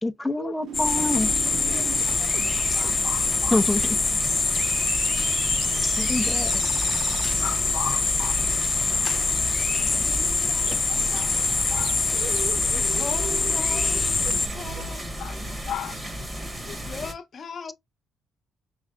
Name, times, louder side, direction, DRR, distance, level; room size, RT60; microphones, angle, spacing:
voice 1, 0.0-1.3 3.5-4.0 5.8-6.6, left 2 dB, 5° left, 0.7 m, -26 dB
sound 1, 0.6-14.9, right 9 dB, 70° right, 0.4 m, -38 dB
sound 2, 0.7-14.5, left 4 dB, 30° left, 0.3 m, -24 dB
sound 3, 0.8-17.1, equal, 20° right, 1.5 m, -34 dB
voice 2, 1.6-2.6 9.8-11.3 12.7-15.0 16.7-17.7, left 6 dB, 50° left, 0.9 m, -40 dB
voice 3, 2.8-3.6 7.4-8.4 11.1-11.3 11.7-11.9 15.2-15.3 15.7-16.0, left 10 dB, 80° left, 0.5 m, -35 dB
6.0 x 3.1 x 2.6 m
cardioid pair, 90°, 0 cm